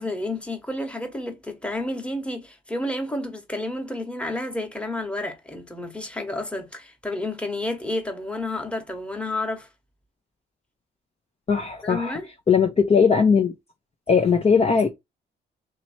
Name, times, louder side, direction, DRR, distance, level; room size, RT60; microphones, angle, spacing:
voice 1, 0.0-9.7 11.8-12.3, left 1 dB, 5° left, 1.2 m, -30 dB
voice 2, 11.5-12.2 12.5-13.5 14.1-14.9, left 6 dB, 30° left, 0.8 m, -19 dB
3.0 x 3.0 x 4.4 m
cardioid pair, 90°, 20 cm